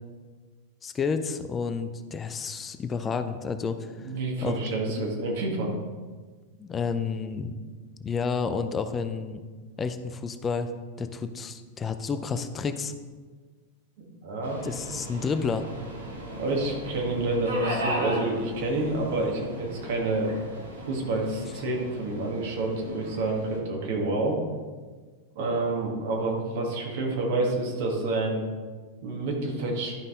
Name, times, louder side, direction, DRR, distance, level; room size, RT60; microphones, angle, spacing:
voice 1, 0.8-4.1 4.4-4.6 5.0-5.1 6.6-7.5 8.0-9.4 9.8-10.7 11.0-12.9 14.6-15.7, left 5 dB, 20° left, 9 dB, 0.6 m, -30 dB
voice 2, 4.0-5.7 14.2-14.6 16.3-20.3 20.9-24.4 25.4-28.4 29.0-30.0, right 2 dB, 50° right, -1 dB, 1.9 m, -28 dB
Subway metro underground, 14.4-23.6, equal, 75° right, 1.9 m, -36 dB
11.5 x 5.4 x 3.9 m, 1.4 s
figure-of-eight pair, 90°, 0 cm